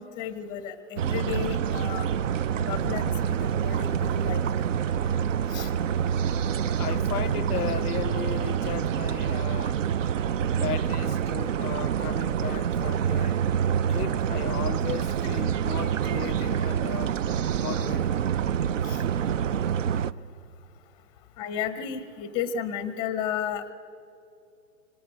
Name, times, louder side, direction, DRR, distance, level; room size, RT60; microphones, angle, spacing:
voice 1, 0.0-2.1 2.6-4.5 5.5-5.7 18.8-19.0 21.4-23.7, left 8 dB, 10° left, 0.7 m, -33 dB
sound 1, 1.0-20.1, right 8 dB, 50° right, 0.7 m, -27 dB
voice 2, 6.4-9.8 10.6-13.4 13.9-17.2 17.6-18.2, left 10 dB, 70° left, 0.6 m, -36 dB
26.0 x 24.5 x 8.3 m
hypercardioid pair, 140°, 48 cm